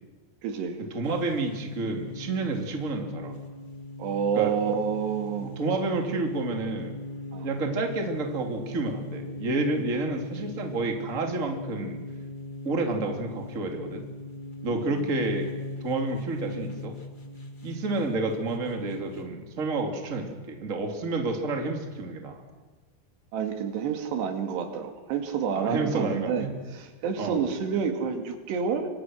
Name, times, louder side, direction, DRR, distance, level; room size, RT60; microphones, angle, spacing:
voice 1, 0.4-0.8 4.0-5.6 7.3-7.5 14.6-15.0 23.3-28.9, right 7 dB, 80° right, 5 dB, 4.3 m, -29 dB
voice 2, 0.9-3.4 4.3-4.5 5.4-7.0 7.4-12.0 12.6-14.1 14.6-15.5 15.8-16.9 17.6-22.4 25.5-26.5 27.2-27.4, right 3 dB, 20° right, 3 dB, 2.5 m, -29 dB
sound 1, 1.0-19.3, left 2 dB, 30° left, 0.8 m, -39 dB
28.5 x 24.5 x 6.4 m, 1.3 s
omnidirectional pair, 4.8 m